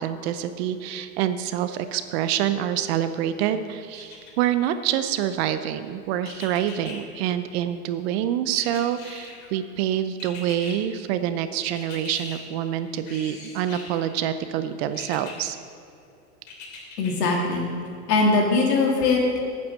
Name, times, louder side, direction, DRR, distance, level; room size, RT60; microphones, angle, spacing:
voice 1, 0.0-15.6, right 10 dB, 40° right, 11 dB, 0.6 m, -26 dB
sound 1, 3.9-4.7 6.2-7.0 8.5-9.5 10.2-10.7 11.8-12.4 13.1-14.0 14.9-15.3 16.5-17.3 17.8-17.9, left 4 dB, 45° left, 3.1 m, -41 dB
voice 2, 17.0-17.7 18.1-19.4, left 3 dB, 75° left, 0 dB, 2.9 m, -21 dB
9.0 x 7.8 x 7.5 m, 2.6 s
hypercardioid pair, 130°, 49 cm